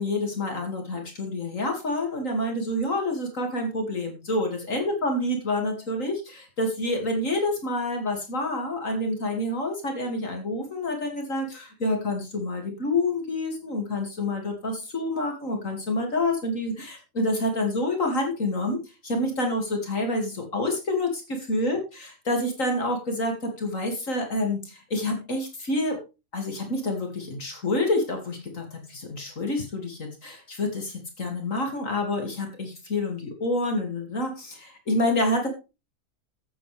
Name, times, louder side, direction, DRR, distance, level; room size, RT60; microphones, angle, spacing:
voice 1, 0.0-26.0 26.3-35.5, left 1 dB, 65° left, 3 dB, 3.0 m, -28 dB
15.5 x 9.1 x 3.5 m, 0.29 s
omnidirectional pair, 1.4 m